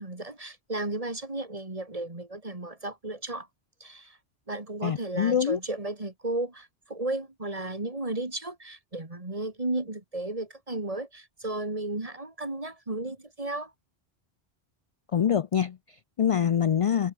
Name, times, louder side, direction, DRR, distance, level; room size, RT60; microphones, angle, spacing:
voice 1, 0.0-3.5 3.8-4.2 4.5-13.7, right 2 dB, 35° right, 2.8 m, -34 dB
voice 2, 4.8-5.6 15.1-17.1, left 8 dB, 60° left, 0.3 m, -25 dB
omnidirectional pair, 1.1 m